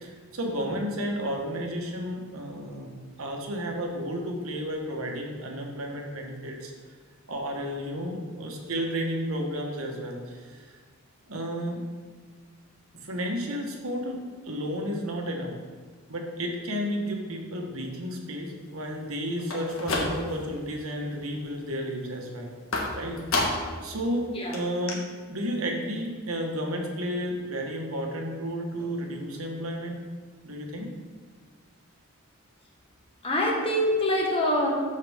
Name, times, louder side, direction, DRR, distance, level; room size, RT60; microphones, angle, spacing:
voice 1, 0.0-6.7 7.3-10.7 11.3-11.8 13.0-15.5 16.1-22.5 22.9-25.0 25.3-30.0 30.4-30.9, equal, 80° right, 1 dB, 1.4 m, -32 dB
sound 1, 19.4-20.6 20.9-21.4 22.7-23.8 24.2-24.3 24.5-24.6 24.9-25.0, left 2 dB, 75° left, 1.4 m, -30 dB
voice 2, 33.2-34.7, left 1 dB, 25° left, -1 dB, 1.4 m, -25 dB
13.5 x 4.8 x 3.6 m, 1.5 s
head